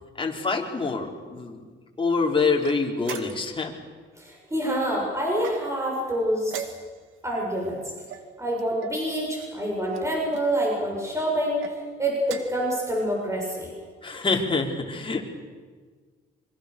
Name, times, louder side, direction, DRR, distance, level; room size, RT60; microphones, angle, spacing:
voice 1, 0.1-1.6 2.0-3.7 14.0-15.2, left 4 dB, 25° left, 0 dB, 4.6 m, -26 dB
sound 1, 2.6-3.6 5.3-5.9 6.5-7.2 8.1-9.0 9.9-10.5 11.4-11.8 12.2-12.7, right 7 dB, 85° right, 2.3 m, -40 dB
voice 2, 4.2-6.7 7.2-7.8 8.4-13.7, right 1 dB, 15° right, -2 dB, 7.6 m, -27 dB
26.0 x 24.0 x 7.1 m, 1.5 s
cardioid pair, 90°, 20 cm